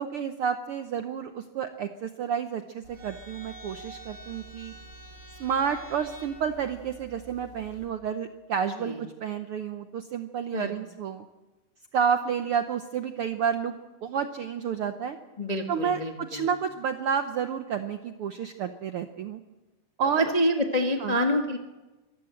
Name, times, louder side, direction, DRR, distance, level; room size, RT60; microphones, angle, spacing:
voice 1, 0.0-4.7 5.4-11.2 11.9-15.2 15.7-19.4 20.0-20.3 21.0-21.3, right 7 dB, 70° right, 8 dB, 1.3 m, -30 dB
sound 1, 2.8-7.9, right 1 dB, 35° right, 6.2 m, -47 dB
voice 2, 15.4-16.5 20.2-21.6, equal, 25° left, 3 dB, 0.8 m, -27 dB
24.5 x 14.5 x 7.8 m, 1.1 s
omnidirectional pair, 3.5 m